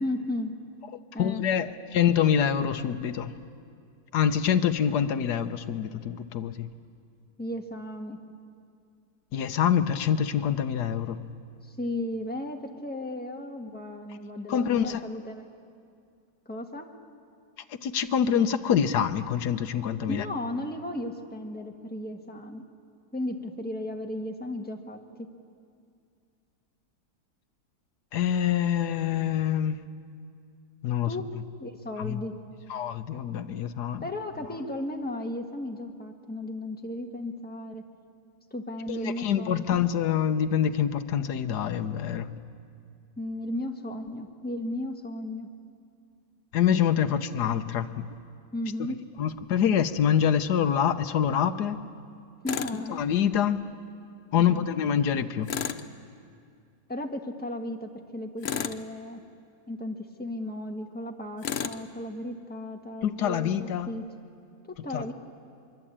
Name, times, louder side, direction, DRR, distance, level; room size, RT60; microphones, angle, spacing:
voice 1, 0.0-0.6 1.1-1.4 7.4-8.2 11.6-15.4 16.4-16.9 20.1-22.6 23.1-25.3 31.0-31.2 31.6-32.3 34.0-37.8 38.5-39.8 43.2-45.5 48.5-49.0 52.4-53.0 54.4-54.7 56.9-59.2 59.7-64.1 64.6-65.1, left 1 dB, 5° left, 2 dB, 1.5 m, -35 dB
voice 2, 1.2-3.3 4.1-6.7 9.3-11.2 14.5-15.0 17.7-20.2 28.1-29.8 30.8-31.1 32.0-32.2 32.7-34.0 38.9-42.3 46.5-48.0 48.8-51.8 52.9-53.6 54.3-55.5 63.0-63.9 64.9-65.1, left 8 dB, 85° left, 10 dB, 1.4 m, -26 dB
Tools, 52.5-52.8 55.5-55.9 58.4-58.9 61.4-61.8, left 8 dB, 50° left, 0.8 m, -31 dB
24.0 x 23.5 x 8.8 m, 2.4 s
omnidirectional pair, 1.7 m